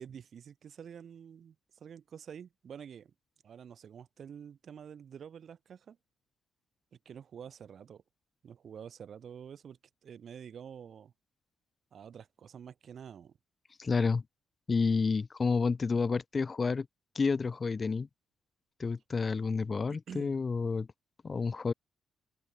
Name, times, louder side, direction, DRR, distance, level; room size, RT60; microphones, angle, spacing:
voice 1, 0.0-3.1 3.4-6.0 7.0-8.0 8.4-11.1 11.9-13.3 19.9-20.3, right 8 dB, 55° right, 1.2 m, -48 dB
voice 2, 13.8-14.2 14.7-16.9 17.1-18.1 18.8-20.9 21.2-21.7, left 4 dB, 35° left, 0.6 m, -30 dB
open air
cardioid pair, 90°, 0 cm